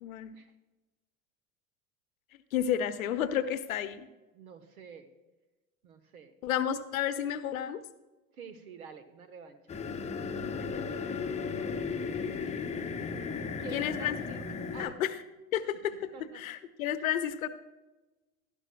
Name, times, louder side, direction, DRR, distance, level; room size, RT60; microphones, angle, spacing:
voice 1, 0.0-0.3 2.5-4.1 6.4-7.8 10.6-10.9 13.7-14.1 14.6-15.2 15.5-17.5, left 10 dB, 65° left, 12 dB, 0.8 m, -32 dB
voice 2, 4.3-5.1 5.8-6.3 8.3-9.8 13.6-14.4 14.7-14.9 16.1-16.4, right 5 dB, 70° right, 10 dB, 1.3 m, -47 dB
sound 1, 9.7-14.9, left 5 dB, 15° left, 0.9 m, -35 dB
16.5 x 12.0 x 2.3 m, 1.1 s
figure-of-eight pair, 80°, 45 cm